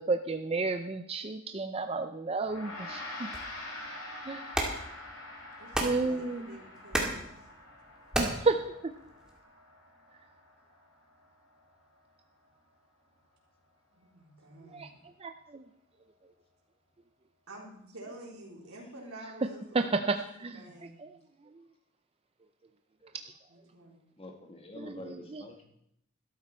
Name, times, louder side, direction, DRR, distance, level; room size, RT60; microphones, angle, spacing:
voice 1, 0.0-3.3 4.3-4.4 5.8-6.6 8.2-8.9 14.7-14.9 15.2-15.6 19.7-20.6 21.0-21.1 21.6-21.7 24.8-25.4, right 3 dB, 25° right, 7 dB, 0.5 m, -32 dB
Gong, 2.4-12.0, left 2 dB, 70° left, 5.6 m, -46 dB
sound 1, 3.3-9.4, right 1 dB, 5° right, 1.9 m, -36 dB
voice 2, 5.6-7.3 13.9-15.0 17.5-20.3 20.5-21.1 23.5-24.1 24.7-24.8, right 1 dB, 85° right, -2 dB, 4.0 m, -49 dB
voice 3, 24.2-25.6, left 1 dB, 25° left, 4 dB, 1.5 m, -46 dB
13.0 x 12.5 x 4.4 m, 0.76 s
head